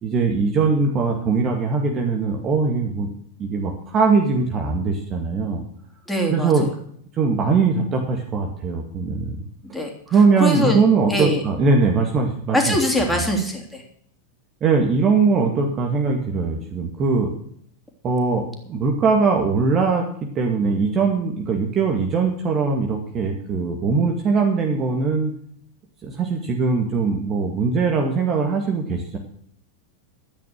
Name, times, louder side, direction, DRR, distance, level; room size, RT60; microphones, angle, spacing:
voice 1, 0.0-3.1 3.4-5.6 6.3-6.7 7.1-9.4 10.1-12.8 13.1-13.2 14.6-17.3 18.0-20.1 20.4-25.3 26.0-29.2, right 4 dB, 30° right, 2 dB, 2.0 m, -21 dB
voice 2, 6.1-6.7 9.7-9.9 10.4-10.8 11.1-11.4 12.5-13.8, equal, 5° left, 0 dB, 3.4 m, -22 dB
13.0 x 9.5 x 6.6 m, 0.64 s
figure-of-eight pair, 90°, 0 cm